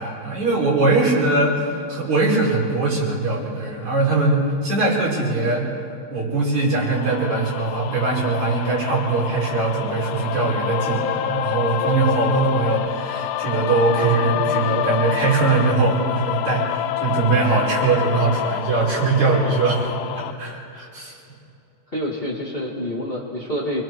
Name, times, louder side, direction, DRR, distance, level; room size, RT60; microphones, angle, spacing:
voice 1, 0.0-5.7 6.1-19.9 20.1-21.1, right 3 dB, 75° right, -4 dB, 6.0 m, -21 dB
sound 1, 6.8-20.3, left 11 dB, 80° left, 1.5 m, -27 dB
voice 2, 21.9-23.8, equal, 20° left, -3 dB, 2.3 m, -27 dB
28.5 x 21.5 x 4.7 m, 2.7 s
omnidirectional pair, 3.3 m